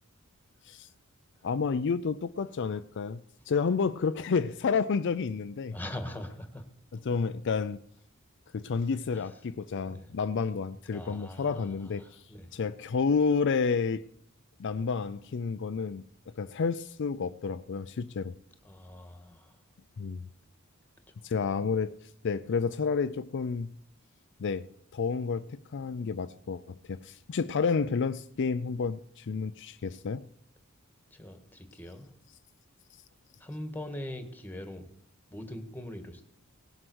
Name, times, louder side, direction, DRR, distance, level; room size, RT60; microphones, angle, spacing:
voice 1, 1.4-3.2 3.5-5.8 7.0-7.8 8.5-12.2 12.5-14.0 14.6-16.0 16.4-18.3 20.0-20.3 21.2-22.0 22.2-23.7 24.4-30.3, left 5 dB, 55° left, 0.4 m, -30 dB
voice 2, 5.7-6.6 9.1-9.3 9.8-10.1 10.9-12.5 18.6-19.6 31.1-32.1 33.4-34.9 35.3-36.2, left 1 dB, 10° left, 1.6 m, -42 dB
18.0 x 7.7 x 6.2 m
head